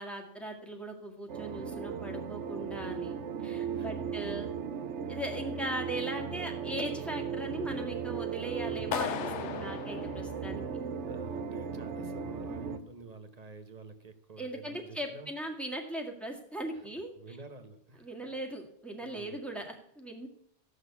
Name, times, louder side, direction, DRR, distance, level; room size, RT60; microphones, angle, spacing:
voice 1, 0.0-4.5 5.1-10.7 14.4-17.1 18.0-20.3, right 1 dB, ahead, 0 dB, 1.9 m, -39 dB
sound 1, 1.3-12.8, right 6 dB, 85° right, 1.2 m, -37 dB
voice 2, 2.8-3.1 3.7-4.4 8.6-9.7 11.1-15.3 16.7-16.8 17.1-18.3 19.0-19.4, right 3 dB, 35° right, 9 dB, 1.2 m, -50 dB
Clapping, 8.9-11.0, left 9 dB, 90° left, 1.0 m, -37 dB
14.5 x 6.5 x 8.3 m, 0.75 s
omnidirectional pair, 1.2 m